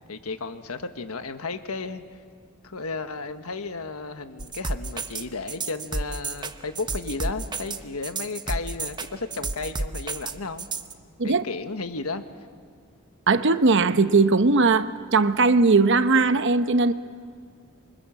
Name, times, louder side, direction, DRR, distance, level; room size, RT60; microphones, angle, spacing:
voice 1, 0.1-2.0 2.6-10.7 11.2-12.2, left 3 dB, 85° left, 1.4 m, -33 dB
sound 1, 4.4-10.9, right 3 dB, 20° right, 0.9 m, -31 dB
voice 2, 13.3-16.9, right 3 dB, 60° right, 0.9 m, -19 dB
27.0 x 24.5 x 7.4 m
head